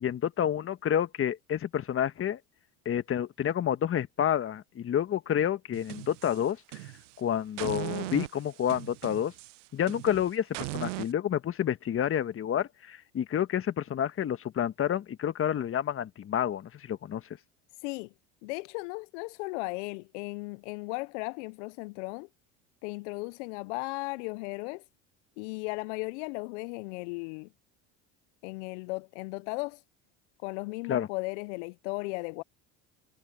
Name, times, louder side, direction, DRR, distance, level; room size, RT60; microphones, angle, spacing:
voice 1, 0.0-2.4 2.8-6.6 6.8-6.9 7.2-9.3 9.7-17.2 30.9-31.1, left 9 dB, 35° left, 1.5 m, -29 dB
sound 1, 5.7-7.2 7.6-11.1, right 21 dB, 85° right, 0.8 m, -39 dB
voice 2, 18.4-22.3 22.8-24.8 25.4-27.5 28.4-29.8 30.4-32.4, left 27 dB, 75° left, 0.6 m, -36 dB
hypercardioid pair, 85°, 36 cm